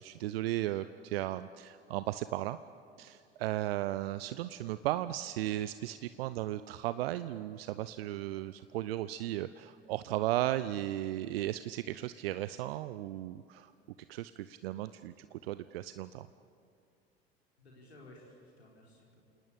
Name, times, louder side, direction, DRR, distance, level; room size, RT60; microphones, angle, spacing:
voice 1, 0.0-2.6 3.0-13.7 14.1-16.3, right 14 dB, 70° right, 14 dB, 0.7 m, -35 dB
voice 2, 17.6-19.2, left 1 dB, 85° left, -3 dB, 4.7 m, -56 dB
29.0 x 19.0 x 8.7 m, 2.4 s
figure-of-eight pair, 70°, 31 cm